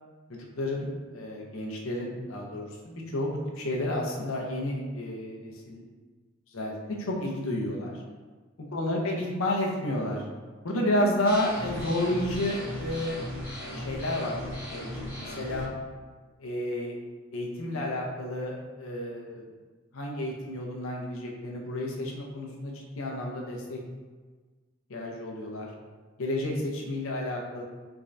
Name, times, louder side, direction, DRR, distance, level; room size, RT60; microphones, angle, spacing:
voice 1, 0.3-5.8 6.5-7.9 8.7-10.2 10.6-13.2 13.7-15.7 16.4-17.0 17.3-19.4 19.9-23.8 24.9-25.7 26.2-27.6, left 1 dB, 75° left, 0 dB, 0.6 m, -31 dB
sound 1, 11.3-15.6, left 1 dB, 10° right, 1.5 m, -37 dB
3.5 x 3.2 x 2.6 m, 1.4 s
head